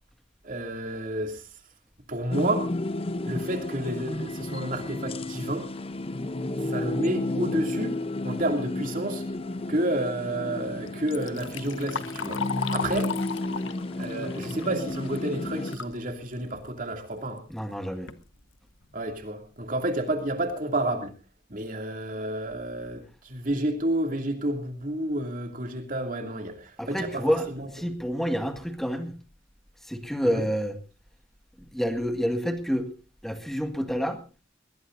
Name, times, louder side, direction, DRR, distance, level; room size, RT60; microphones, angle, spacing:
voice 1, 0.4-1.5 2.1-2.7 3.2-5.7 6.7-7.9 8.2-9.2 9.7-12.4 12.7-13.2 14.0-17.4 18.9-21.1 21.5-27.2 27.5-27.7 30.2-30.5, right 1 dB, 45° right, 4 dB, 2.7 m, -30 dB
sound 1, 2.3-15.8, left 2 dB, 30° left, 0.8 m, -32 dB
Liquid, 10.9-16.0 16.4-16.5 17.4-17.5 17.9-18.2 18.8-18.9 19.4-19.5 20.0-20.2, left 5 dB, 90° left, 1.1 m, -36 dB
voice 2, 17.5-18.1 26.8-27.5 27.7-29.1 29.9-30.8 31.7-32.9 33.2-34.2, equal, ahead, 6 dB, 1.9 m, -28 dB
21.5 x 19.0 x 2.6 m, 0.34 s
head